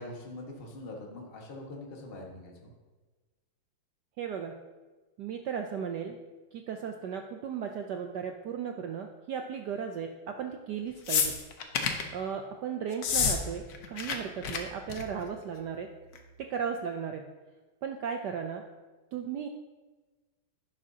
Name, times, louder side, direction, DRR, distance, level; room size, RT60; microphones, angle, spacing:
voice 1, 0.0-2.7, left 2 dB, 30° left, -1 dB, 1.5 m, -43 dB
voice 2, 4.2-4.6 5.2-6.2 6.5-11.4 12.1-15.9 16.4-17.2 17.8-18.6 19.1-19.5, right 7 dB, 75° right, 4 dB, 1.0 m, -36 dB
sound 1, 11.1-12.1 12.9-13.4 13.6-14.2 14.4-14.6 14.9-15.2 16.2-16.3, left 6 dB, 55° left, 1.2 m, -28 dB
11.0 x 11.0 x 2.8 m, 1.3 s
omnidirectional pair, 2.4 m